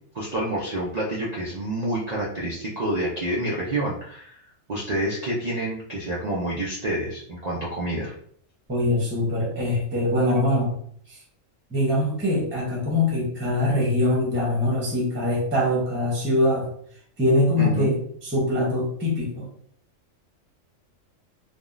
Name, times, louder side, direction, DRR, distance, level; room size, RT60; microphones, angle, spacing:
voice 1, 0.1-4.4 4.7-8.1 17.6-18.0, right 1 dB, 65° right, -6 dB, 0.4 m, -28 dB
voice 2, 8.7-10.7 11.1-11.2 11.7-16.7 17.2-18.0 18.2-19.5, left 1 dB, 10° right, -3 dB, 0.7 m, -23 dB
3.3 x 2.1 x 2.4 m, 0.63 s
omnidirectional pair, 1.4 m